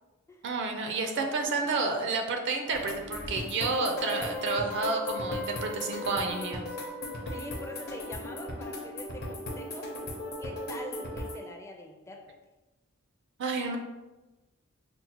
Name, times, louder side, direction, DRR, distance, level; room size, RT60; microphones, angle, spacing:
voice 1, 0.4-6.6 13.4-13.8, right 3 dB, 55° right, 4 dB, 0.4 m, -30 dB
voice 2, 1.0-1.8 7.3-9.9 10.4-12.4, left 1 dB, 15° left, 2 dB, 0.4 m, -44 dB
sound 1, 2.7-11.4, left 1 dB, 45° left, 0.7 m, -37 dB
5.2 x 2.1 x 2.9 m, 1.1 s
head